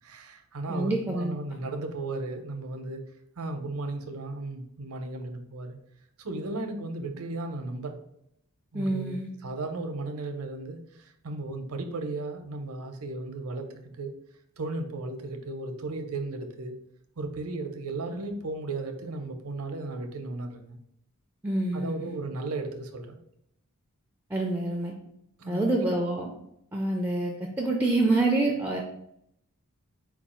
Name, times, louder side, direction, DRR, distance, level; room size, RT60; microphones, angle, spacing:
voice 1, 0.0-3.0 3.4-5.8 6.2-8.0 8.7-14.1 14.6-16.7 17.2-20.8 21.7-23.2 25.4-26.1, right 2 dB, 80° right, 5 dB, 0.7 m, -35 dB
voice 2, 0.7-1.4 8.7-9.3 21.4-22.1 24.3-24.9 25.5-26.3 26.7-28.8, right 2 dB, 10° right, 0 dB, 0.4 m, -27 dB
4.6 x 2.3 x 4.2 m, 0.75 s
head